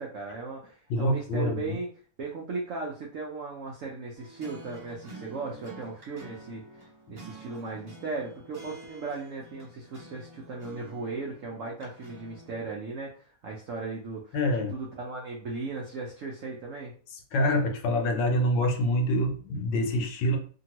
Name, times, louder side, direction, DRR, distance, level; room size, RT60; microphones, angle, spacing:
voice 1, 0.0-1.9 2.2-14.4 14.7-16.9, right 3 dB, 80° right, -1 dB, 0.7 m, -37 dB
voice 2, 0.9-1.7 14.3-14.7 17.3-20.4, left 1 dB, 75° left, 4 dB, 1.3 m, -26 dB
sound 1, 4.2-12.7, right 1 dB, 30° right, 0.4 m, -49 dB
2.9 x 2.7 x 2.8 m, 0.42 s
omnidirectional pair, 2.1 m